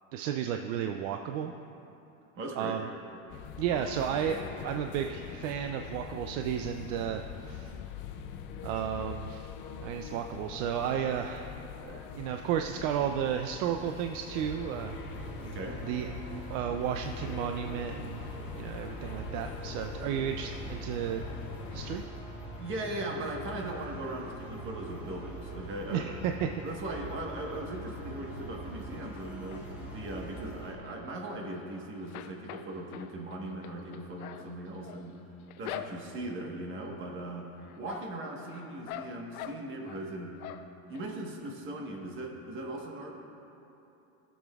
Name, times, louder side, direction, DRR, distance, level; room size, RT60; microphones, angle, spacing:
voice 1, 0.1-1.5 2.6-2.9 3.6-7.8 8.6-9.5 9.8-11.6 11.8-15.3 15.8-18.2 18.5-21.2 21.7-22.0 25.9-26.5, right 9 dB, 60° right, 5 dB, 0.5 m, -33 dB
voice 2, 2.3-2.8 15.4-15.8 22.6-26.1 26.6-35.2 35.6-37.5 37.8-40.4 40.9-43.1, right 1 dB, 30° right, 0 dB, 1.3 m, -39 dB
sound 1, 3.3-22.1, left 8 dB, 30° left, 0.3 m, -43 dB
sound 2, 14.3-30.8, right 1 dB, 5° right, 1.5 m, -43 dB
sound 3, 29.2-29.9 30.4-31.7 32.0-36.3 36.8-37.3 37.6-40.0 40.4-41.0 41.4-41.5 41.8-41.9, left 11 dB, 90° left, 0.6 m, -45 dB
19.0 x 7.2 x 2.4 m, 2.9 s
supercardioid pair, 145°, 43 cm